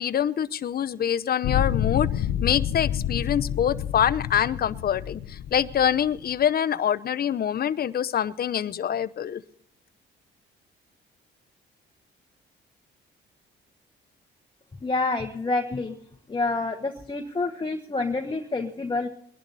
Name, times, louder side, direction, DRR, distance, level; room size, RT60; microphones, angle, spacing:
voice 1, 0.0-9.4, left 9 dB, 50° left, 15 dB, 0.7 m, -25 dB
sound 1, 1.4-6.3, left 10 dB, 80° left, 0.7 m, -28 dB
voice 2, 14.8-15.9 16.3-19.1, left 3 dB, 25° left, 3 dB, 1.3 m, -28 dB
21.5 x 11.5 x 4.1 m, 0.68 s
cardioid pair, 90°, 20 cm